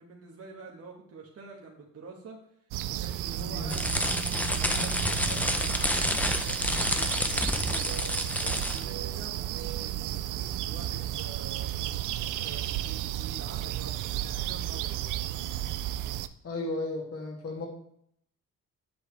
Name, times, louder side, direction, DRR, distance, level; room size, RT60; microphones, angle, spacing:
voice 1, 0.0-2.4 2.9-8.0 8.4-11.7 12.4-15.3, right 4 dB, 50° right, -1 dB, 1.7 m, -47 dB
sound 1, 2.7-16.3, right 13 dB, 90° right, 0.5 m, -33 dB
voice 2, 3.4-3.7 16.4-17.7, left 2 dB, 50° left, -1 dB, 2.2 m, -34 dB
sound 2, 3.7-8.9, left 1 dB, 5° left, 0.7 m, -29 dB
8.1 x 7.7 x 3.4 m, 0.68 s
cardioid pair, 90°, 30 cm